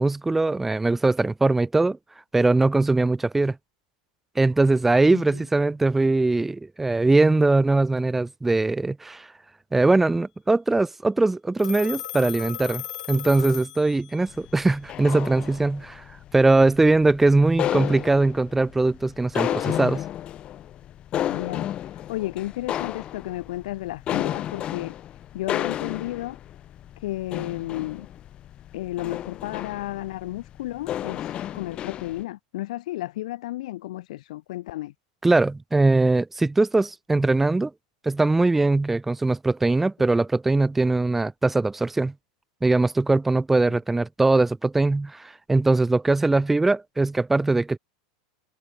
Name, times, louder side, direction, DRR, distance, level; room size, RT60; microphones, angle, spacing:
voice 1, 0.0-2.0 2.3-3.6 4.4-9.3 9.7-16.0 16.3-20.0 35.2-37.7 38.0-42.1 42.6-47.8, right 2 dB, 5° right, 0.3 m, -21 dB
Telephone, 11.6-14.3, left 13 dB, 85° left, 4.2 m, -36 dB
sound 1, 14.3-32.2, left 12 dB, 25° left, 3.0 m, -32 dB
voice 2, 21.3-24.9 25.3-26.4 27.0-28.1 28.7-34.9 43.7-43.8, left 16 dB, 65° left, 6.0 m, -33 dB
supercardioid pair, 165°, 4 cm